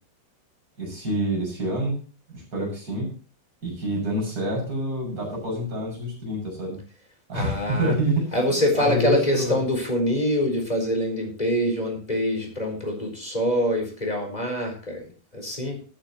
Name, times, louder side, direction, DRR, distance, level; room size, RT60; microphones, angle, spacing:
voice 1, 0.8-2.0 2.3-3.1 3.6-6.8 7.3-8.3 8.8-9.6, equal, 25° right, 0 dB, 7.4 m, -27 dB
voice 2, 7.3-7.9 8.3-15.8, equal, 10° left, 2 dB, 4.0 m, -25 dB
19.5 x 9.1 x 3.0 m, 0.37 s
omnidirectional pair, 4.2 m